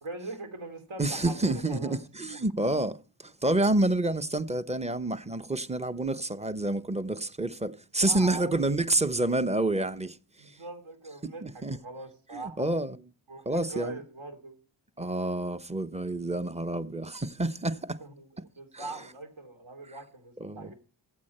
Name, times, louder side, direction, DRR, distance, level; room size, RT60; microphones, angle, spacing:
voice 1, 0.0-2.0 2.3-2.4 8.0-8.6 10.4-12.8 13.3-14.6 18.0-18.3 18.6-20.7, right 2 dB, 65° right, 3.1 m, -42 dB
voice 2, 1.0-10.6 11.4-11.8 12.3-13.0 13.5-14.0 15.0-18.0 18.7-18.8 20.4-20.7, right 2 dB, 15° right, 0.9 m, -28 dB
13.5 x 8.5 x 4.3 m
cardioid pair, 50°, 49 cm